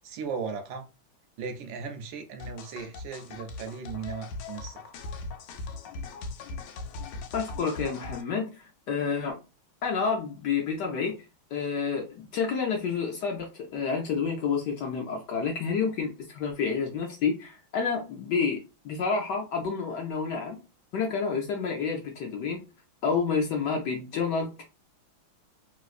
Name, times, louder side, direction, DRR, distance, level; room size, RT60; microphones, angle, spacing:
voice 1, 0.0-0.9 1.4-4.8, right 5 dB, 75° right, 1.2 m, -37 dB
sound 1, 2.4-8.2, left 3 dB, 85° left, 1.4 m, -39 dB
voice 2, 7.3-9.4 9.8-11.1 11.5-20.6 20.9-22.6 23.0-24.6, left 5 dB, 70° left, 1.1 m, -29 dB
3.1 x 3.0 x 2.4 m
omnidirectional pair, 2.3 m